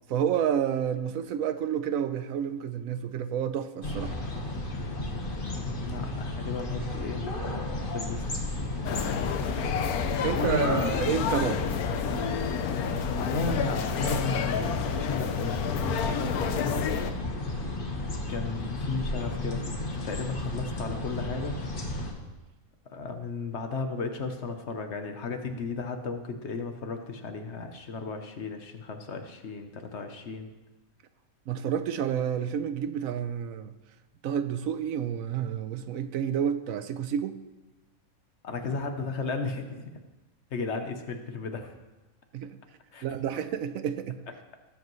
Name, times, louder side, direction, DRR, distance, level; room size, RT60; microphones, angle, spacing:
voice 1, 0.1-4.1 10.2-11.6 31.5-33.7 34.2-37.4 42.3-42.6 43.0-44.2, right 9 dB, 75° right, 11 dB, 1.0 m, -29 dB
sound 1, 3.8-22.1, left 2 dB, 40° left, 1.4 m, -33 dB
voice 2, 5.5-7.3 7.9-8.4 10.3-10.9 13.2-17.0 18.3-19.7 20.0-21.6 22.9-30.5 38.4-39.9 40.5-41.7 42.9-43.0, left 4 dB, 55° left, 6 dB, 1.1 m, -34 dB
sound 2, 8.8-17.1, left 7 dB, 85° left, 1.2 m, -30 dB
18.5 x 7.9 x 3.1 m, 1.1 s
omnidirectional pair, 1.5 m